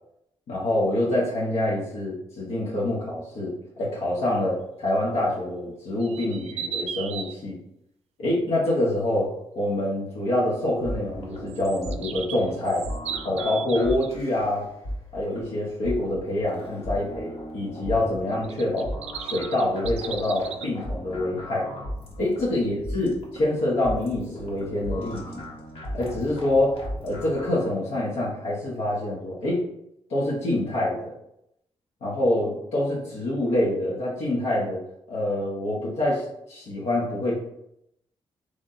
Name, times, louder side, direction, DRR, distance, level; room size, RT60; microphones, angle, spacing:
voice 1, 0.5-7.6 8.2-9.3 9.5-12.8 13.2-14.7 15.1-18.9 19.2-21.7 22.2-25.5 25.9-29.6 30.1-31.1 32.0-34.8 35.1-37.4, left 1 dB, 80° left, -5 dB, 1.2 m, -26 dB
sound 1, 6.0-7.3 11.5-14.1 18.4-20.7, right 8 dB, 90° right, 0.4 m, -36 dB
sound 2, 10.8-27.6, equal, 60° left, 1.3 m, -36 dB
3.8 x 3.4 x 4.1 m, 0.80 s
wide cardioid pair, 165°, 11 cm